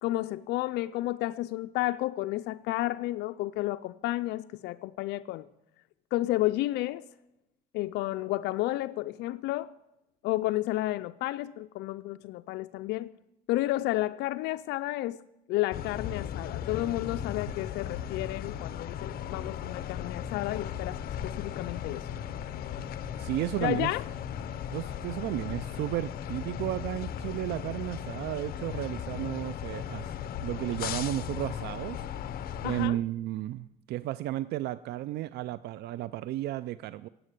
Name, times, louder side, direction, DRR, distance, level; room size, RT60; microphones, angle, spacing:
voice 1, 0.0-5.5 6.1-7.0 7.7-9.7 10.2-13.1 13.5-15.2 15.5-22.1 23.6-24.0 32.6-33.0, left 17 dB, 80° left, 0.4 m, -31 dB
sound 1, 15.7-32.9, left 9 dB, 60° left, 0.8 m, -37 dB
voice 2, 23.2-23.9 24.7-30.1 30.4-32.0 32.6-37.1, right 14 dB, 75° right, 0.4 m, -33 dB
17.0 x 7.6 x 8.2 m
cardioid pair, 110°, 17 cm